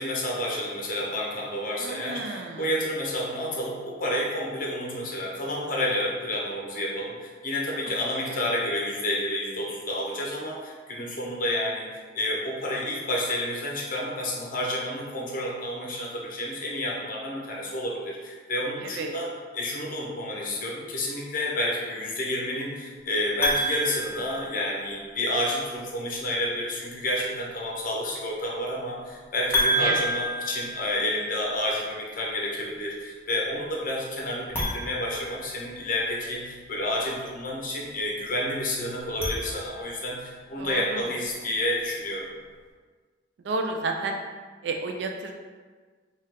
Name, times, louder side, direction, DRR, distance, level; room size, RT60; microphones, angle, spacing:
voice 1, 0.0-42.3, left 1 dB, 50° left, -3 dB, 0.8 m, -30 dB
voice 2, 1.8-2.7 8.3-8.4 18.8-19.2 29.8-30.1 40.6-41.1 43.4-44.2 44.6-45.3, right 3 dB, 70° right, 3 dB, 0.4 m, -31 dB
sound 1, 23.4-25.1 29.5-31.6 34.4-36.0 39.0-40.2, equal, 15° left, 1.0 m, -30 dB
4.4 x 2.4 x 3.7 m, 1.5 s
head